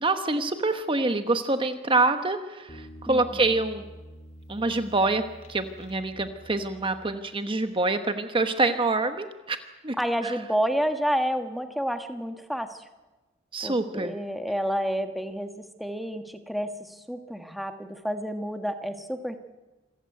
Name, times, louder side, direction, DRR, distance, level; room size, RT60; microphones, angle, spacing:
voice 1, 0.0-3.9 4.5-9.6 9.8-10.0 10.2-10.3 13.5-14.2, right 2 dB, 25° right, 8 dB, 1.1 m, -26 dB
sound 1, 2.7-7.6, equal, 40° left, 2.6 m, -47 dB
voice 2, 3.1-3.4 10.0-12.8 13.6-19.4, equal, ahead, 6 dB, 1.3 m, -30 dB
27.0 x 14.5 x 9.3 m, 1.2 s
head